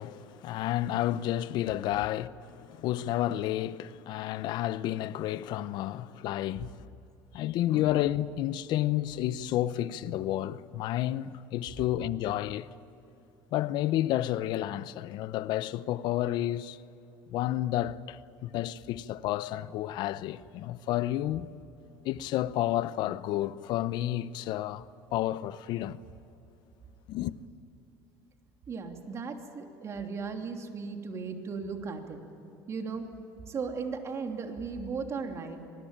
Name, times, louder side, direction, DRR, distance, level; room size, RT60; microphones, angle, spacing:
voice 1, 0.0-6.9 7.3-12.7 13.5-16.8 17.3-21.5 22.0-24.8 25.1-26.0 27.1-27.3, left 13 dB, 60° left, 0.8 m, -31 dB
voice 2, 28.7-32.2 32.7-33.1 33.5-35.6, right 5 dB, 35° right, 3.0 m, -36 dB
25.5 x 20.0 x 8.9 m
supercardioid pair, 115°, 8 cm